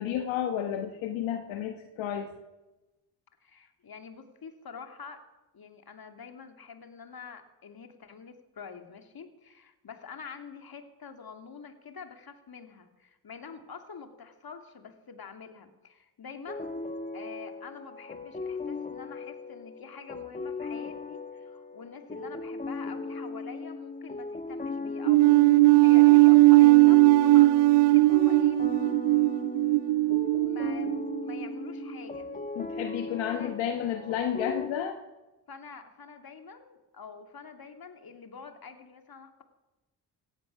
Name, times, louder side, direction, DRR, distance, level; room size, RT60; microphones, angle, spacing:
voice 1, 0.0-2.4 32.6-35.0, left 9 dB, 75° left, 6 dB, 1.3 m, -31 dB
voice 2, 3.4-5.2 5.5-16.7 17.1-28.7 30.5-32.3 33.3-33.6 35.5-39.4, left 5 dB, 50° left, 6 dB, 2.5 m, -46 dB
sound 1, 16.5-34.7, left 3 dB, 15° left, 1.3 m, -38 dB
sound 2, 25.1-31.5, right 21 dB, 60° right, 0.5 m, -19 dB
17.5 x 13.5 x 6.0 m, 1.1 s
hypercardioid pair, 40°, 47 cm